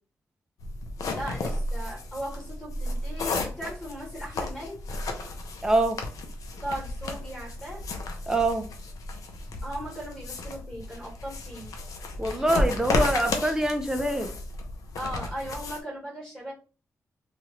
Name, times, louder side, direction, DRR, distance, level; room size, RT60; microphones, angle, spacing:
sound 1, 0.6-15.8, left 2 dB, 85° left, 0.6 m, -33 dB
voice 1, 1.1-4.8 6.6-7.8 9.6-11.7 15.0-16.5, equal, 10° left, 1.7 m, -37 dB
voice 2, 5.6-6.0 8.3-8.7 12.2-14.3, right 1 dB, 10° right, 0.4 m, -24 dB
3.0 x 2.4 x 3.0 m
wide cardioid pair, 150°, 6 cm